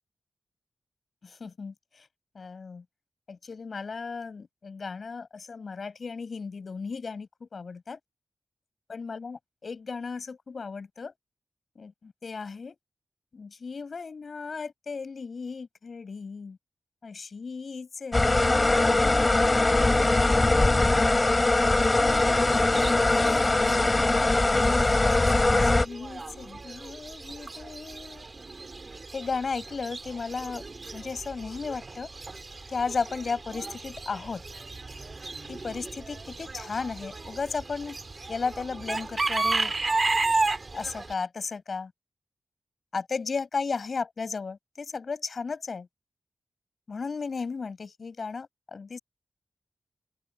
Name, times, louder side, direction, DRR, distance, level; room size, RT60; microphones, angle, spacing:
voice 1, 1.2-1.7 2.4-2.8 3.3-8.0 8.9-11.1 11.8-12.7 13.3-16.6 17.0-21.2 21.7-24.9 25.5-28.2 29.1-30.6 30.9-32.1 32.7-34.4 35.5-38.0 38.3-39.7 40.7-41.9 42.9-45.9 46.9-49.0, left 4 dB, 55° left, 5.3 m, -35 dB
sound 1, 18.1-25.9, left 2 dB, 25° left, 3.3 m, -21 dB
Chicken rooster / Bird, 22.0-41.1, right 3 dB, 40° right, 2.8 m, -34 dB
open air
wide cardioid pair, 90°, 0 cm